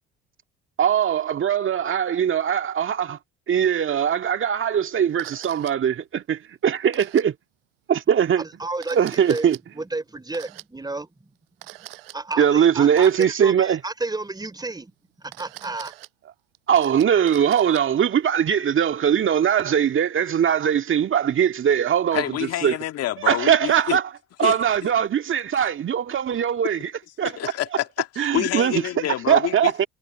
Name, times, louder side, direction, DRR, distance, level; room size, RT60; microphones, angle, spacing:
voice 1, 0.8-3.2 3.5-7.3 7.9-8.4 8.9-9.6 12.4-13.8 16.7-22.2 22.6-22.7 23.3-24.0 24.4-26.9 27.2-27.5 28.2-28.8 29.3-29.9, right 8 dB, 45° right, 2.0 m, -21 dB
Camera, 5.2-5.7 6.9-7.2 8.7-9.6 10.3-10.6 11.6-12.2 13.0-13.3 15.2-16.1 16.6-17.8, right 19 dB, 85° right, 5.5 m, -42 dB
voice 2, 8.4-11.3 12.1-14.9 15.2-15.9, right 2 dB, 15° right, 3.8 m, -32 dB
voice 3, 22.1-24.0 24.4-24.9 27.2-29.9, left 13 dB, 55° left, 2.0 m, -28 dB
hypercardioid pair, 60°, 29 cm